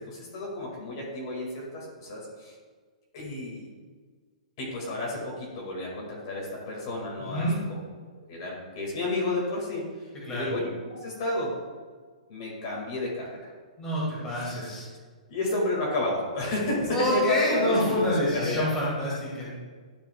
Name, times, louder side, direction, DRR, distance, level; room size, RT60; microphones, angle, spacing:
voice 1, 0.1-2.5 3.1-3.7 4.6-7.5 8.3-11.5 12.3-13.3 14.3-14.8 15.3-18.7, left 2 dB, 35° left, -3 dB, 1.9 m, -31 dB
voice 2, 7.2-7.6 10.2-10.5 13.8-14.8 16.9-19.5, left 1 dB, 10° left, -7 dB, 2.2 m, -27 dB
12.0 x 5.6 x 2.3 m, 1.5 s
hypercardioid pair, 175°, 4 cm